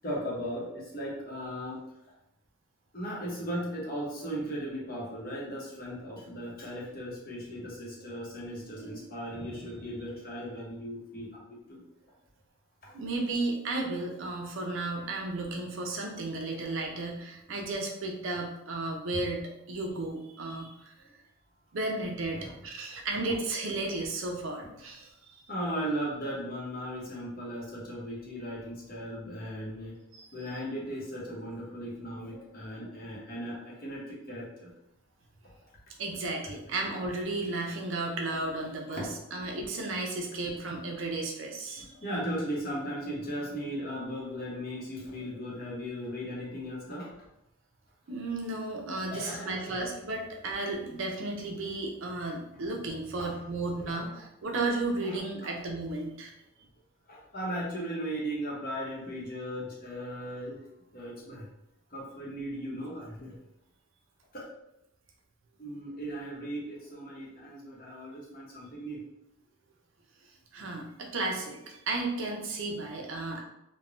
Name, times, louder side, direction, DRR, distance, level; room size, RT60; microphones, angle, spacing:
voice 1, 0.0-1.8 2.9-11.4 11.7-11.8 12.8-13.0 22.4-22.6 25.5-30.0 30.3-34.7 38.9-39.1 41.8-47.3 49.1-49.8 53.2-53.3 55.0-55.5 57.1-60.6 60.9-61.5 61.9-63.3 64.3-64.4 65.6-69.0 70.6-70.7, equal, 45° left, -4 dB, 0.8 m, -37 dB
voice 2, 12.9-20.9 21.7-25.4 30.1-30.3 36.0-41.9 48.1-56.3 70.5-73.4, right 2 dB, 65° right, 1 dB, 0.5 m, -34 dB
3.1 x 2.1 x 2.5 m, 0.84 s
head